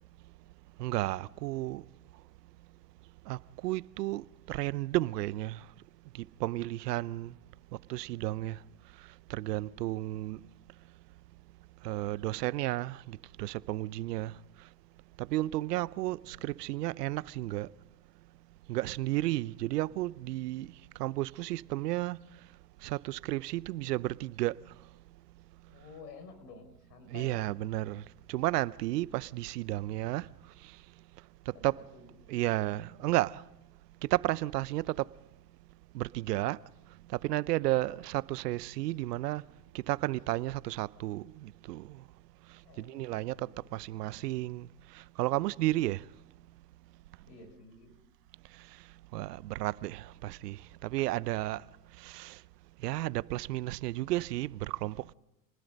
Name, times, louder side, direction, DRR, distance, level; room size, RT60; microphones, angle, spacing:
voice 1, 0.8-1.8 3.3-5.6 6.4-7.3 7.9-8.6 9.3-10.4 11.8-14.3 15.3-17.7 18.7-20.7 21.0-22.2 22.8-24.5 27.1-28.0 28.3-30.3 31.6-31.8 32.3-33.4 34.1-35.1 35.9-36.6 37.2-39.4 39.7-41.8 42.8-44.7 45.2-46.0 49.1-50.6 50.8-51.6 52.0-52.3 52.8-55.0, right 17 dB, 75° right, 0.8 m, -32 dB
voice 2, 25.7-27.4 31.7-32.2 37.6-38.1 42.6-43.7 47.3-48.0, left 4 dB, 80° left, 5.7 m, -52 dB
28.5 x 20.0 x 5.3 m
hypercardioid pair, 115°, 48 cm